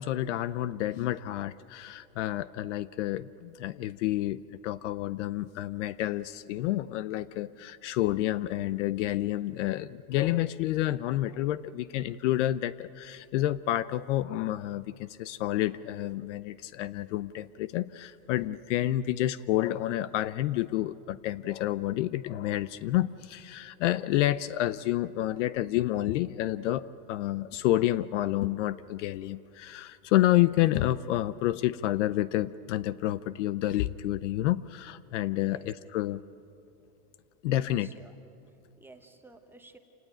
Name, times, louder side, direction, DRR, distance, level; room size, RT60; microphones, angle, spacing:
voice 1, 0.0-36.2 37.4-37.9, left 14 dB, 55° left, 17 dB, 0.6 m, -29 dB
voice 2, 35.1-35.7 37.6-38.1 38.5-39.8, right 2 dB, 5° right, 5 dB, 0.9 m, -54 dB
28.0 x 18.5 x 9.1 m, 2.7 s
supercardioid pair, 160°, 45 cm